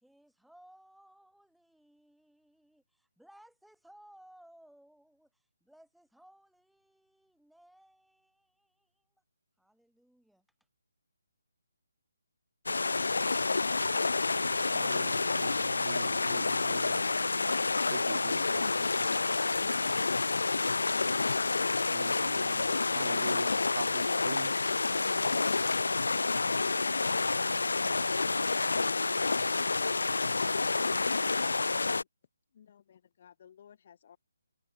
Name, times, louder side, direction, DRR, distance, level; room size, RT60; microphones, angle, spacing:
voice 1, 0.0-9.1 9.6-10.4, right 1 dB, ahead, 2.4 m, -60 dB
sound 1, 12.7-32.0, left 3 dB, 70° left, 0.6 m, -29 dB
voice 2, 14.7-17.1 17.9-19.1 19.6-19.8 21.9-24.5, right 6 dB, 50° right, 0.3 m, -43 dB
voice 3, 32.5-34.2, left 8 dB, 40° left, 2.3 m, -57 dB
figure-of-eight pair, 145°, 0 cm